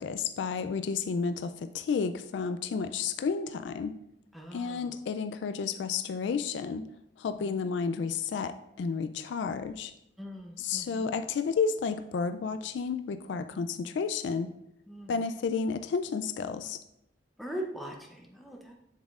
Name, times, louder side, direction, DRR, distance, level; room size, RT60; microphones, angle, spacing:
voice 1, 0.0-3.9 4.5-6.8 7.2-9.9 10.6-14.5 15.1-16.8, left 5 dB, 65° left, 9 dB, 0.3 m, -31 dB
voice 2, 4.3-4.9 7.4-7.5 10.2-11.1 14.9-15.1 17.4-18.8, right 1 dB, ahead, 0 dB, 0.6 m, -41 dB
7.4 x 7.0 x 2.4 m, 0.82 s
head